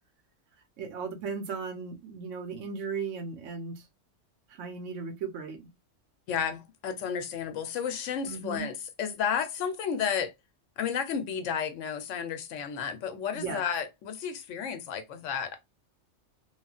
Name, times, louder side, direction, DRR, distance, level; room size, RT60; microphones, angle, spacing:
voice 1, 0.8-3.9 4.5-5.6 8.2-8.7 13.3-13.6, right 5 dB, 90° right, 1.1 m, -36 dB
voice 2, 6.3-10.3 10.8-15.6, left 7 dB, 85° left, 1.0 m, -32 dB
3.1 x 2.4 x 2.3 m
omnidirectional pair, 1.2 m